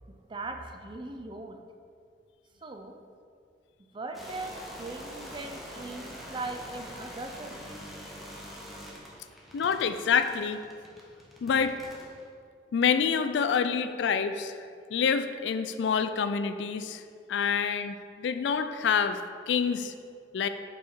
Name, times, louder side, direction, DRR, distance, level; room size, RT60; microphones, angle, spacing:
voice 1, 0.0-1.6 2.6-2.9 3.9-7.8, right 3 dB, 25° right, 5 dB, 0.5 m, -40 dB
sound 1, 4.1-12.2, equal, ahead, 0.9 m, -44 dB
voice 2, 9.5-10.6 11.4-11.8 12.7-14.6 14.9-17.0 17.3-19.2 19.5-19.9 20.3-20.5, left 6 dB, 75° left, 10 dB, 0.3 m, -27 dB
5.5 x 4.7 x 4.4 m, 2.2 s
head